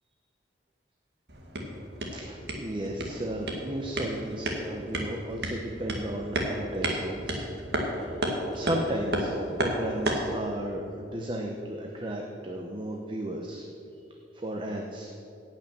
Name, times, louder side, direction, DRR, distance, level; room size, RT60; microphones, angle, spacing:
sound 1, 1.3-10.4, right 1 dB, 60° right, 1.9 m, -33 dB
voice 1, 2.0-7.5 7.8-13.6 14.3-15.1, right 1 dB, 25° right, 1 dB, 0.9 m, -34 dB
17.5 x 6.1 x 7.0 m, 2.8 s
head